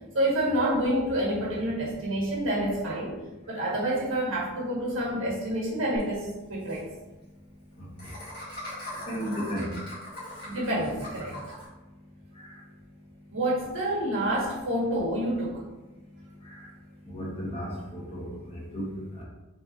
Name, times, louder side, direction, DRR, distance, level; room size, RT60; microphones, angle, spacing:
voice 1, 0.1-3.2 3.4-6.8 10.4-11.4 13.3-15.6, right 1 dB, 60° right, -4 dB, 1.6 m, -28 dB
Laughter, 5.9-6.0 6.3-6.4 6.6-6.8 8.0-11.7, left 1 dB, 45° left, 1.6 m, -40 dB
voice 2, 9.0-9.7 12.4-12.5 16.4-16.7 17.1-19.2, equal, 30° left, -4 dB, 1.1 m, -35 dB
5.9 x 3.4 x 2.6 m, 1.1 s
head